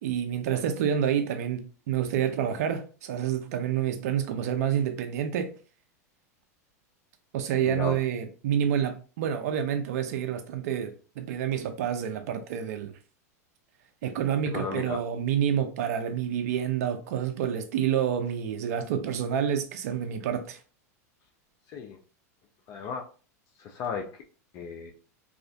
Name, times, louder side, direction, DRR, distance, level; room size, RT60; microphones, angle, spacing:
voice 1, 0.0-5.5 7.3-12.9 14.0-20.6, right 9 dB, 70° right, 0.4 m, -28 dB
voice 2, 7.6-8.0 14.5-15.0 21.7-22.0 22.7-23.0 23.6-24.1 24.5-24.9, left 6 dB, 45° left, 0.4 m, -34 dB
2.4 x 2.4 x 2.2 m
hypercardioid pair, 115°, 9 cm